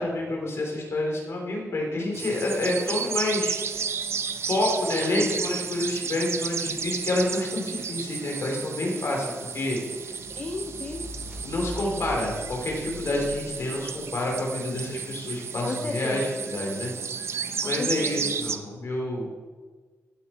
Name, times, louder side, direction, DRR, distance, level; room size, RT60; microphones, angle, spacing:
voice 1, 0.0-3.6 4.4-10.1 11.4-16.9 17.2-19.3, left 1 dB, 55° left, 0 dB, 3.4 m, -28 dB
sound 1, 2.1-18.6, right 6 dB, 50° right, 0.6 m, -33 dB
sound 2, 10.1-14.3, equal, 5° right, 3.3 m, -41 dB
voice 2, 10.3-11.1 15.6-16.2 17.6-18.3, left 3 dB, 30° left, 3 dB, 0.7 m, -34 dB
16.0 x 9.0 x 4.4 m, 1.4 s
wide cardioid pair, 160°, 6 cm